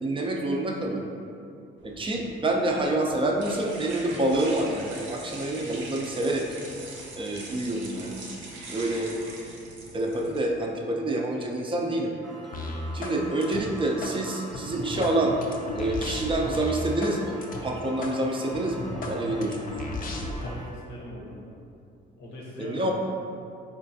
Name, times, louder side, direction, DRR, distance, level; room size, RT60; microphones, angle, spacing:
voice 1, 0.0-1.1 1.8-6.5 7.1-8.2 8.7-9.1 9.9-12.1 12.9-15.4 15.7-17.4 17.6-19.6 22.6-22.9, right 1 dB, 25° right, 0 dB, 0.4 m, -27 dB
sound 1, 1.8-10.4, right 2 dB, 75° right, 0.7 m, -43 dB
sound 2, 12.2-20.7, equal, ahead, 0.9 m, -44 dB
sound 3, 12.5-13.2 13.4-14.1 14.5-17.1 17.4-17.6 18.0-18.1 18.5-20.5, left 2 dB, 45° left, 0.5 m, -34 dB
voice 2, 20.4-21.6 22.2-22.9, left 1 dB, 85° left, -4 dB, 0.8 m, -41 dB
4.4 x 2.3 x 2.6 m, 2.5 s
cardioid pair, 90°, 20 cm